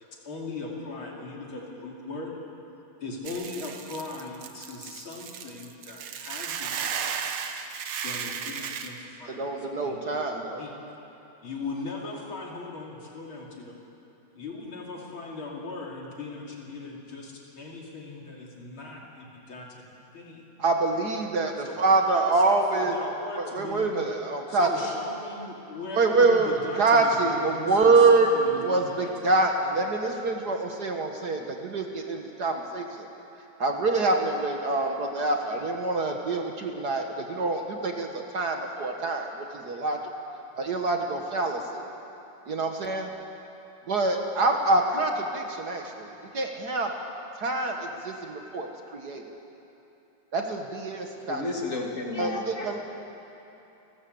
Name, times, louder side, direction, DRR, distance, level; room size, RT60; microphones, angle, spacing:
voice 1, 0.2-2.3 3.0-7.3 8.0-10.0 10.3-10.7 11.4-13.8 14.4-19.8 20.1-20.4 21.7-22.4 22.7-23.9 24.5-29.1, left 3 dB, 65° left, -2 dB, 3.6 m, -39 dB
Hiss / Boiling, 3.2-8.9, right 7 dB, 75° right, 1.9 m, -35 dB
voice 2, 9.3-10.6 20.6-23.0 23.4-24.7 26.0-28.3 28.6-33.1 33.6-40.0 40.6-41.9 42.5-43.1 43.9-46.9 47.4-49.2 50.3-51.4 52.2-52.8, right 3 dB, 50° right, 3 dB, 1.7 m, -25 dB
voice 3, 51.3-52.8, left 3 dB, 35° left, 0 dB, 2.6 m, -32 dB
30.0 x 13.0 x 7.9 m, 3.0 s
omnidirectional pair, 2.4 m